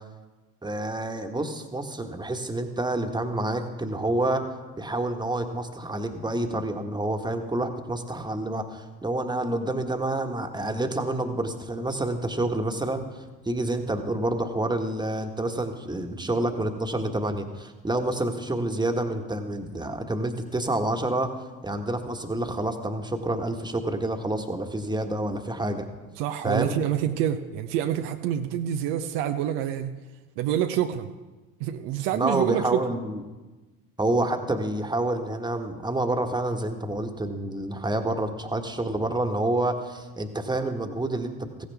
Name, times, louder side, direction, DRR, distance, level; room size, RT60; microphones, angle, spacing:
voice 1, 0.6-4.4 4.8-13.0 13.4-21.3 21.6-25.9 26.4-26.8 32.1-33.2 34.0-41.7, right 1 dB, 10° right, 5 dB, 1.6 m, -28 dB
voice 2, 26.2-29.9 30.4-31.1 31.6-32.8, right 10 dB, 65° right, 7 dB, 0.8 m, -27 dB
15.5 x 15.5 x 3.5 m, 1.2 s
hypercardioid pair, 60°, 44 cm